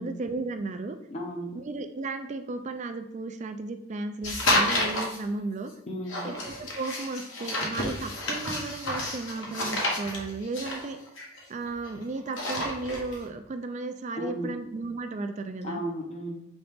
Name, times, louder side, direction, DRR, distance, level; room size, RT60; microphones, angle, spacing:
voice 1, 0.0-1.0 1.5-5.7 6.2-11.0 11.5-15.8, right 3 dB, 35° right, 8 dB, 0.4 m, -34 dB
voice 2, 1.1-1.5 5.9-6.2 14.2-14.5 15.6-16.4, equal, 35° left, 0 dB, 0.7 m, -34 dB
sound 1, 4.2-5.2 6.1-11.9 12.2-13.2, left 1 dB, 70° left, 1.0 m, -30 dB
5.2 x 2.9 x 3.4 m, 0.80 s
head